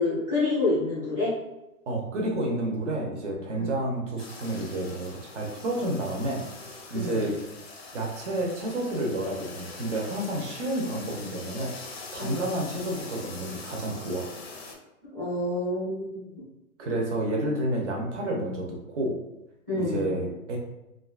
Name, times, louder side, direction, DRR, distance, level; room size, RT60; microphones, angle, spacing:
voice 1, 0.0-1.3 3.5-3.7 6.9-7.2 12.2-12.4 15.1-16.4 19.7-20.0, left 2 dB, 10° right, -14 dB, 0.5 m, -28 dB
voice 2, 1.9-7.4 7.9-11.8 12.1-14.3 16.8-19.2 19.8-20.6, right 1 dB, 55° right, 0 dB, 0.8 m, -30 dB
bathtub shower, 4.2-14.7, left 3 dB, 45° left, 0.5 m, -43 dB
2.6 x 2.3 x 2.4 m, 0.93 s
hypercardioid pair, 175°, 43 cm